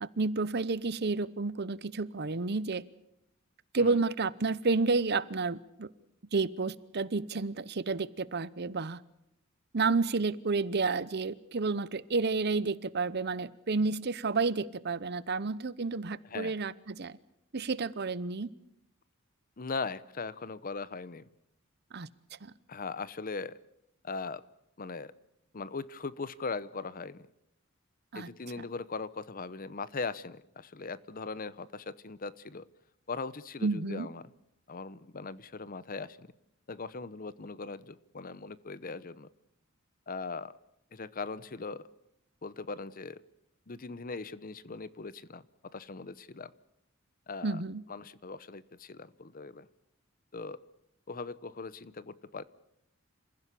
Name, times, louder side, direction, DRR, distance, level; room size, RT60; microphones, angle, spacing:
voice 1, 0.0-2.8 3.7-5.9 6.3-9.0 9.7-17.2 17.5-18.5 21.9-22.1 22.4-22.5 28.1-28.3 33.6-34.1 47.4-47.8, right 3 dB, 55° right, 18 dB, 0.8 m, -30 dB
voice 2, 19.6-21.3 22.7-23.6 24.0-24.4 24.8-25.1 25.5-27.3 28.1-32.6 33.1-34.2 34.7-36.3 36.7-39.3 40.1-40.5 40.9-41.9 42.4-43.2 43.7-45.4 45.7-46.5 47.3-47.6 47.9-49.7 50.3-50.6 51.1-52.4, left 4 dB, 45° left, 18 dB, 0.8 m, -39 dB
27.5 x 15.5 x 8.4 m, 0.81 s
head